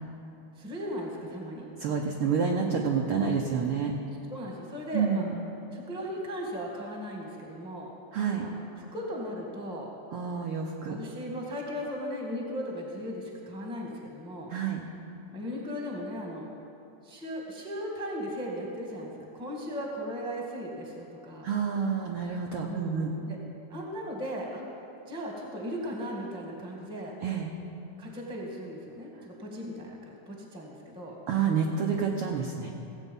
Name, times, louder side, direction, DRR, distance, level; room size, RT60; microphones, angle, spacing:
voice 1, 0.6-1.7 4.3-5.2 5.7-7.9 8.4-9.9 10.8-14.5 15.3-16.5 17.0-21.5 22.6-23.4 23.7-24.6 25.0-27.2 28.0-31.1, equal, 5° right, -1 dB, 0.9 m, -37 dB
voice 2, 1.8-3.9 4.9-5.3 8.1-8.5 10.1-11.0 14.5-14.8 21.4-23.1 27.2-27.5 31.3-32.7, right 6 dB, 80° right, 1 dB, 1.2 m, -28 dB
16.5 x 8.2 x 5.4 m, 2.9 s
omnidirectional pair, 3.5 m